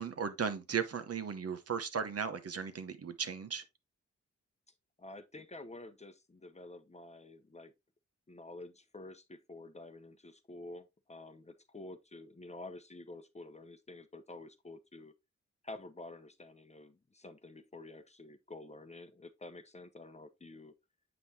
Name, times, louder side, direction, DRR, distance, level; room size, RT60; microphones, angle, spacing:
voice 1, 0.0-3.6, right 6 dB, 55° right, 0.9 m, -36 dB
voice 2, 5.0-7.7 8.3-15.1 15.6-20.7, left 2 dB, 25° left, 0.7 m, -49 dB
8.0 x 5.3 x 2.7 m
wide cardioid pair, 95°, 29 cm